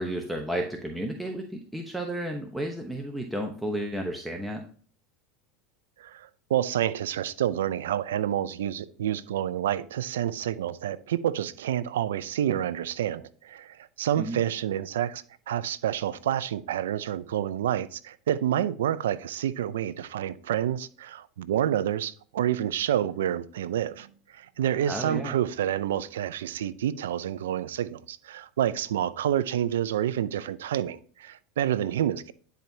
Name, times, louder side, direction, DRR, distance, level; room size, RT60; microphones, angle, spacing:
voice 1, 0.0-4.6 14.2-14.4 24.9-25.3, right 1 dB, 5° right, 1.0 m, -32 dB
voice 2, 6.0-32.3, right 11 dB, 90° right, 0.4 m, -28 dB
10.5 x 4.5 x 2.8 m
supercardioid pair, 105°, 0 cm